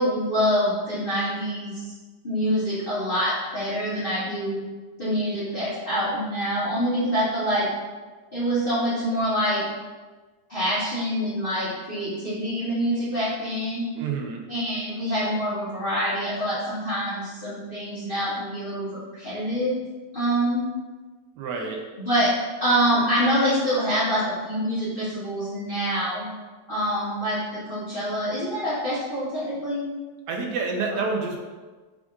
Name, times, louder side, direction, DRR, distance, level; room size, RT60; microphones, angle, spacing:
voice 1, 0.0-1.8 2.2-4.6 5.0-7.7 8.3-9.6 10.5-13.8 14.5-19.8 20.1-20.7 22.0-22.3 22.6-26.3 26.7-29.8, equal, 40° left, -12 dB, 1.0 m, -25 dB
voice 2, 14.0-14.4 21.4-21.8 30.3-31.4, right 4 dB, 75° right, 1 dB, 1.2 m, -28 dB
7.1 x 2.4 x 2.4 m, 1.3 s
omnidirectional pair, 1.9 m